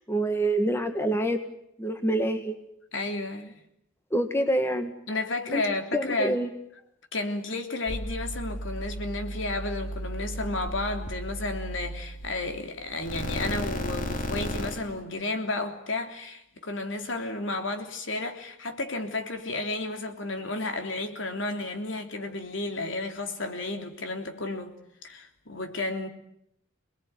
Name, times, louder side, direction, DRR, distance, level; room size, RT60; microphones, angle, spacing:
voice 1, 0.0-1.4 1.8-2.6 4.1-4.9 5.5-5.6 5.9-6.5, right 1 dB, 10° left, 1.8 m, -26 dB
voice 2, 2.9-3.6 5.1-6.4 7.1-24.7 25.0-26.1, left 2 dB, 70° left, 3.3 m, -32 dB
sound 1, 7.9-12.7 12.9-15.0, equal, 40° left, 3.2 m, -34 dB
27.5 x 20.5 x 9.6 m
head